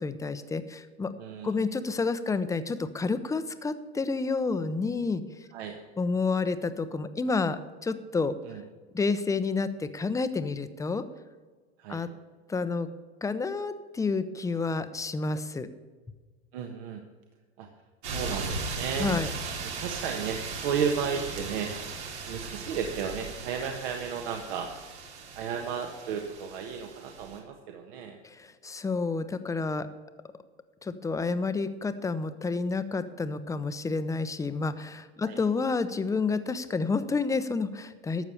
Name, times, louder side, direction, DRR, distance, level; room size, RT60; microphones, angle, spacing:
voice 1, 0.0-1.1 1.4-5.2 6.0-8.4 8.9-11.0 11.9-12.1 12.5-12.9 13.2-15.7 19.0-19.3 28.2-29.9 30.8-38.2, left 4 dB, 10° left, 11 dB, 0.7 m, -29 dB
voice 2, 1.2-1.6 5.5-5.8 8.4-8.6 11.8-12.0 16.5-17.0 17.6-17.7 18.1-19.1 19.6-22.0 22.2-24.7 25.3-28.2 35.2-35.4, right 7 dB, 60° right, 3 dB, 1.4 m, -33 dB
sound 1, 18.0-27.4, right 4 dB, 80° right, 2.9 m, -37 dB
12.5 x 7.3 x 6.9 m, 1.4 s
hypercardioid pair, 105°, 33 cm